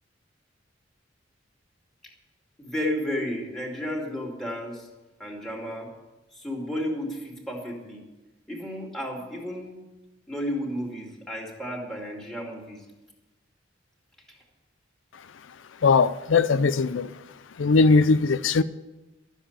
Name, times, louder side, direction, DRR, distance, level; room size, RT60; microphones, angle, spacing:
voice 1, 2.6-4.9 5.2-5.9 6.3-8.0 8.5-9.7 10.3-12.8, equal, 5° left, 2.4 m, -32 dB
voice 2, 15.8-17.1 17.6-18.6, left 4 dB, 85° left, 0.5 m, -20 dB
12.5 x 7.3 x 8.7 m
head